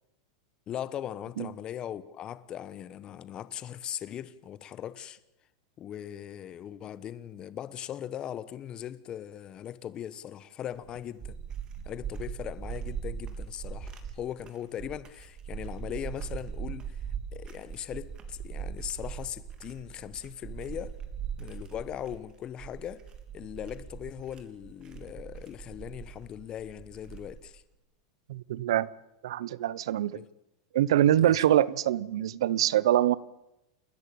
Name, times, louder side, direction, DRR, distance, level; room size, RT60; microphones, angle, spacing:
voice 1, 0.7-5.2 5.8-11.4 11.8-17.0 17.3-21.0 21.4-23.0 23.3-27.6 30.1-30.3 31.2-31.4, left 10 dB, 30° left, 1.1 m, -39 dB
sound 1, 10.7-27.6, right 7 dB, 30° right, 3.3 m, -40 dB
voice 2, 28.3-28.9 29.2-30.2 30.7-33.1, right 12 dB, 80° right, 0.9 m, -24 dB
29.0 x 14.0 x 8.8 m
supercardioid pair, 125°, 3 cm